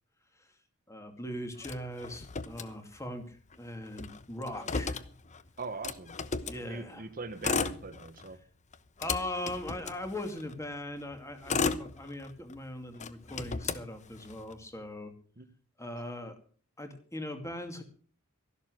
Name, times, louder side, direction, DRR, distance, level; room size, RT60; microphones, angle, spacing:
voice 1, 0.9-5.0 6.4-7.1 9.0-15.1 15.8-16.4 16.8-17.8, left 1 dB, 15° left, 6 dB, 2.5 m, -40 dB
Motor vehicle (road), 1.6-3.2 3.5-3.6 3.9-6.6 7.3-8.3 8.7-10.5 11.1-12.5 13.0-14.5, left 4 dB, 35° left, 1.0 m, -35 dB
voice 2, 5.6-6.1 6.7-8.4, right 3 dB, 40° right, 10 dB, 1.2 m, -41 dB
13.5 x 12.0 x 6.3 m, 0.42 s
head